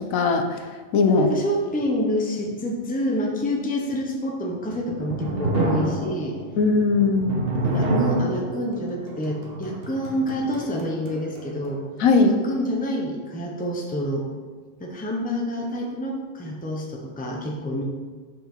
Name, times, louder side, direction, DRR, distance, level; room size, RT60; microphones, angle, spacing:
voice 1, 0.1-0.6 0.9-1.3 6.6-7.4 12.0-12.3, left 4 dB, 80° left, 6 dB, 1.1 m, -19 dB
voice 2, 1.1-6.4 7.5-11.8 12.2-14.3 14.8-17.8, equal, 10° left, 0 dB, 0.6 m, -27 dB
sound 1, 4.6-11.7, right 2 dB, 45° right, 1.2 m, -28 dB
5.7 x 5.1 x 4.4 m, 1.5 s
omnidirectional pair, 1.4 m